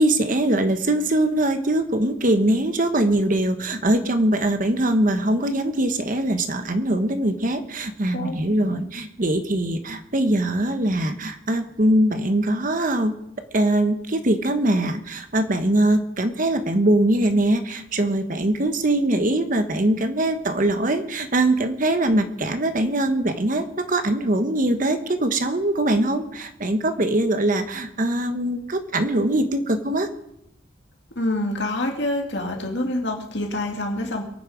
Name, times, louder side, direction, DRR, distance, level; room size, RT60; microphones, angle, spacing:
voice 1, 0.0-13.1 13.5-30.1, right 1 dB, 40° right, 8 dB, 1.1 m, -22 dB
voice 2, 31.2-34.2, left 1 dB, 60° left, 2 dB, 2.5 m, -26 dB
22.5 x 9.5 x 5.1 m, 0.82 s
head